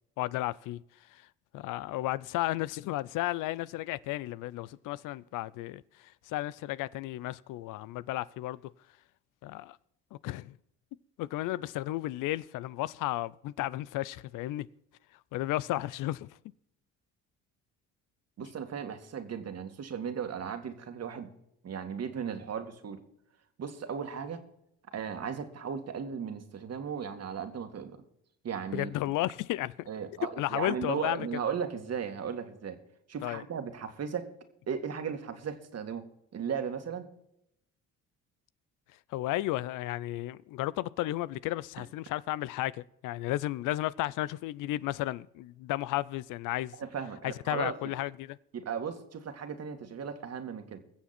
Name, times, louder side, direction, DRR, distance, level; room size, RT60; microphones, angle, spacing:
voice 1, 0.2-0.8 1.1-1.2 1.5-8.7 9.4-9.8 10.1-10.6 11.2-14.7 15.3-16.3 18.4-18.5 28.7-29.9 30.4-31.3 33.2-33.4 39.1-46.7 47.2-48.4, left 16 dB, 75° left, 0.5 m, -33 dB
voice 2, 18.4-21.3 21.6-23.0 23.6-24.4 24.9-28.0 28.4-28.9 29.9-32.8 33.1-34.3 34.7-36.1 36.3-37.1 46.8-47.9 48.5-50.8, right 7 dB, 50° right, 2.1 m, -36 dB
21.5 x 7.2 x 4.3 m
supercardioid pair, 70°, 32 cm